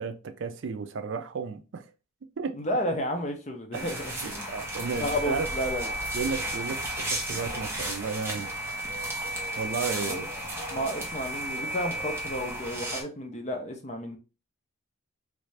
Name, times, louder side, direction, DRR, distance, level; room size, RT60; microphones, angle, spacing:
voice 1, 0.0-1.8 2.4-2.6 3.7-5.5 6.1-8.5 9.6-10.3, right 5 dB, 60° right, 0.4 m, -33 dB
voice 2, 2.5-4.6 5.0-5.9 10.1-10.3 10.7-14.2, equal, 30° left, 0.6 m, -32 dB
sound 1, 3.7-13.0, right 1 dB, 10° right, 0.6 m, -33 dB
3.3 x 2.6 x 3.2 m
head